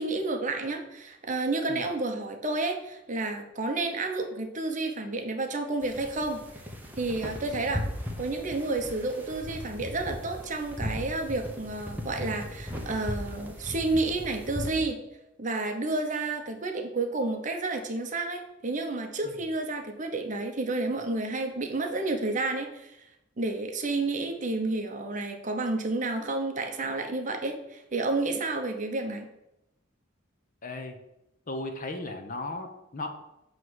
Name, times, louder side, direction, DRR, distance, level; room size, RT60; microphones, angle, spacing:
voice 1, 0.0-6.4 7.0-7.8 8.2-15.0 15.4-23.0 23.4-29.3, right 2 dB, 40° right, 4 dB, 0.8 m, -30 dB
sound 1, 5.8-14.7, equal, 10° right, 0.9 m, -37 dB
voice 2, 30.6-31.0 31.5-33.2, left 2 dB, 40° left, 6 dB, 0.8 m, -36 dB
7.5 x 3.2 x 6.2 m, 0.87 s
head